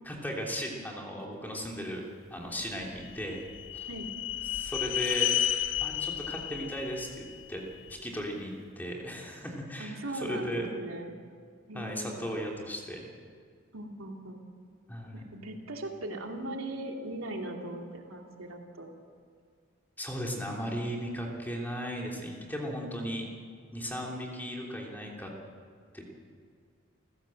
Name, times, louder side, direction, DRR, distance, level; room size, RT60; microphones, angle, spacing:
voice 1, 0.0-2.0 2.3-3.5 3.7-3.9 4.5-5.3 5.8-7.1 7.5-7.6 7.9-10.7 11.7-13.0 14.9-15.2 20.0-23.3 23.7-25.3 25.9-26.1, equal, 10° left, -1 dB, 3.2 m, -36 dB
sound 1, 2.8-8.0, left 11 dB, 75° left, 1.0 m, -32 dB
voice 2, 9.8-11.2 11.7-12.3 13.7-14.4 15.1-18.9, right 1 dB, 90° right, 1 dB, 2.9 m, -39 dB
30.0 x 14.5 x 7.8 m, 2.1 s
head